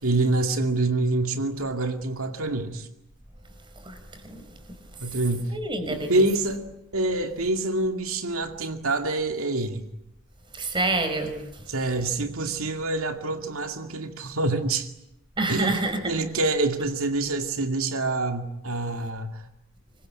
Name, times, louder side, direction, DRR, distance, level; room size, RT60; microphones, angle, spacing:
voice 1, 0.0-2.9 5.0-5.5 5.9-6.6 6.9-9.9 11.7-14.9 15.5-19.4, right 2 dB, 90° right, 6 dB, 2.3 m, -26 dB
voice 2, 5.5-6.1 10.5-11.3 15.4-16.0, right 2 dB, 20° right, 7 dB, 5.1 m, -27 dB
26.0 x 23.5 x 9.8 m, 0.82 s
head